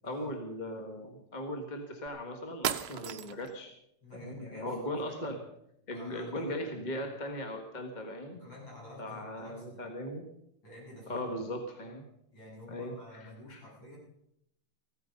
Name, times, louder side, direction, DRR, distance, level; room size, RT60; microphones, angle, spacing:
voice 1, 0.0-3.7 4.2-5.4 5.9-8.4 9.0-10.3 11.1-12.0 12.7-13.6, left 1 dB, 25° left, 4 dB, 1.5 m, -38 dB
sound 1, 2.1-2.2 2.6-3.6, right 10 dB, 70° right, 0.9 m, -35 dB
voice 2, 4.0-5.4 5.9-6.6 8.3-9.8 10.6-11.4 12.3-14.0, left 2 dB, 55° left, -6 dB, 9.0 m, -49 dB
16.0 x 14.0 x 5.3 m, 0.77 s
omnidirectional pair, 2.4 m